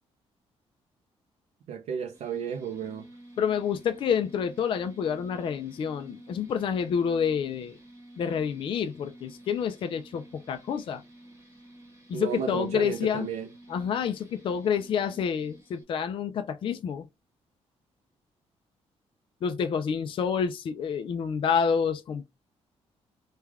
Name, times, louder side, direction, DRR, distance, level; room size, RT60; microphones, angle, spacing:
voice 1, 1.7-3.1 12.1-13.5, right 7 dB, 75° right, 0.5 m, -33 dB
sound 1, 2.1-15.8, right 1 dB, 25° right, 1.1 m, -52 dB
voice 2, 3.4-7.8 8.2-11.0 12.1-13.3 13.7-17.1 19.4-22.2, left 7 dB, 50° left, 0.4 m, -28 dB
3.3 x 2.3 x 3.4 m
cardioid pair, 150°, 11 cm